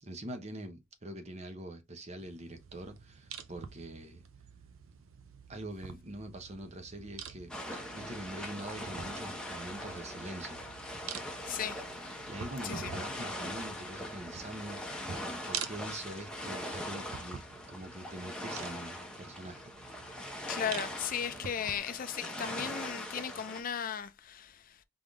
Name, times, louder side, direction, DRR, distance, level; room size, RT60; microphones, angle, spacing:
voice 1, 0.0-4.2 5.5-10.6 12.2-19.7, right 1 dB, 35° right, 0.8 m, -44 dB
sound 1, 2.2-21.8, right 7 dB, 85° right, 0.6 m, -47 dB
sound 2, 7.5-23.6, left 1 dB, 5° left, 0.8 m, -41 dB
voice 2, 11.5-11.8 12.6-12.9 20.5-24.5, left 8 dB, 45° left, 0.4 m, -36 dB
3.8 x 3.5 x 3.5 m
head